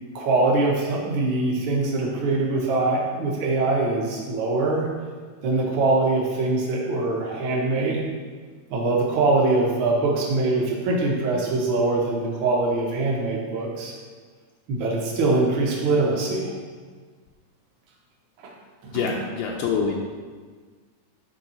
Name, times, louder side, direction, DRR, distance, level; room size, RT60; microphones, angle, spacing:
voice 1, 0.1-4.9 5.4-8.1 8.7-13.9 14.7-16.6 18.8-19.2, right 2 dB, 60° right, -3 dB, 1.3 m, -23 dB
voice 2, 18.9-19.9, left 5 dB, 80° left, -1 dB, 2.2 m, -25 dB
11.0 x 3.7 x 4.3 m, 1.5 s
omnidirectional pair, 3.9 m